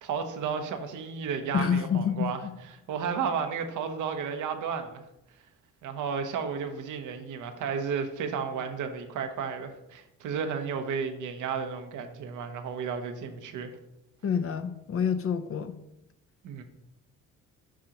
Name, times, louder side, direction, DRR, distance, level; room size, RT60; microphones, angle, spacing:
voice 1, 0.0-2.4 2.9-5.0 5.8-13.7 16.4-16.6, right 6 dB, 80° right, 6 dB, 0.9 m, -33 dB
voice 2, 1.5-2.5 14.2-15.8, left 7 dB, 50° left, 11 dB, 0.6 m, -28 dB
7.4 x 5.8 x 2.9 m, 0.87 s
cardioid pair, 90°, 30 cm